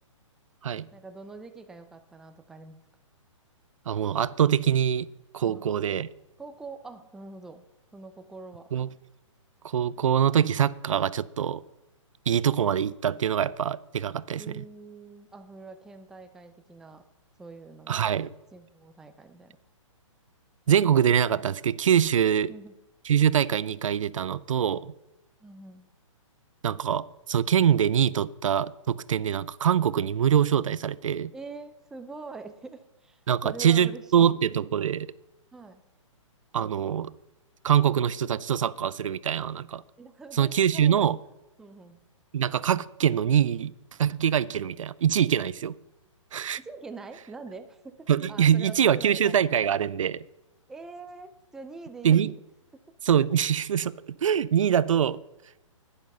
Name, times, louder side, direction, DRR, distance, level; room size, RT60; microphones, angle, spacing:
voice 1, 0.9-2.8 5.4-5.7 6.4-7.6 7.9-8.7 14.4-17.0 17.4-18.1 18.5-19.6 22.5-22.7 25.4-25.9 31.3-34.4 35.5-35.8 40.0-41.0 41.6-42.0 46.6-49.6 50.7-52.4, right 3 dB, 5° right, 8 dB, 0.4 m, -44 dB
voice 2, 3.9-5.1 5.3-6.1 8.7-8.9 9.7-11.6 12.3-14.6 17.9-18.3 20.7-22.5 23.1-24.9 26.6-31.3 33.3-35.1 36.5-37.1 37.6-39.8 40.3-41.2 42.3-43.7 44.0-45.7 46.3-46.6 48.1-50.2 52.0-52.3 53.0-55.2, right 9 dB, 70° right, 20 dB, 0.5 m, -24 dB
10.5 x 10.0 x 5.4 m, 0.97 s
hypercardioid pair, 145°, 17 cm